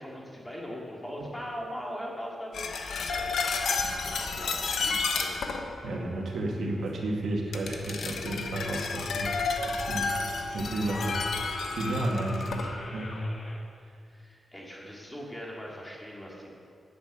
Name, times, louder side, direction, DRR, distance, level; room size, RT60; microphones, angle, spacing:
voice 1, 0.0-5.8 10.2-10.6 14.1-16.5, equal, 10° left, -3 dB, 2.5 m, -41 dB
sound 1, 2.5-6.0 7.5-12.7 13.0-13.2, left 4 dB, 80° left, 1.2 m, -31 dB
voice 2, 5.8-9.3 9.7-10.1 10.5-13.2, right 1 dB, 75° right, -1 dB, 2.2 m, -32 dB
sound 2, 10.4-13.6 15.4-15.5, left 2 dB, 40° left, 1.6 m, -40 dB
11.5 x 9.3 x 8.0 m, 2.3 s
wide cardioid pair, 150°, 0 cm